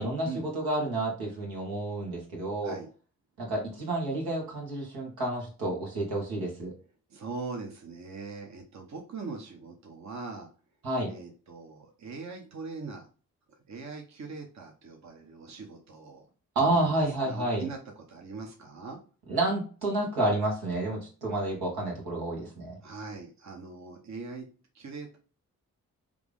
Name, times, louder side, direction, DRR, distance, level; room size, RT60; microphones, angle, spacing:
voice 1, 0.0-2.8 3.4-6.7 10.8-11.1 16.5-17.6 19.3-22.8, right 2 dB, 80° right, -1 dB, 1.5 m, -30 dB
voice 2, 7.1-10.5 11.1-13.1 13.7-16.2 16.7-16.9 17.2-17.8 18.1-19.0 22.8-24.5 24.7-25.2, right 4 dB, 45° right, 2 dB, 0.9 m, -41 dB
3.4 x 2.5 x 3.4 m, 0.37 s
supercardioid pair, 40°, 37 cm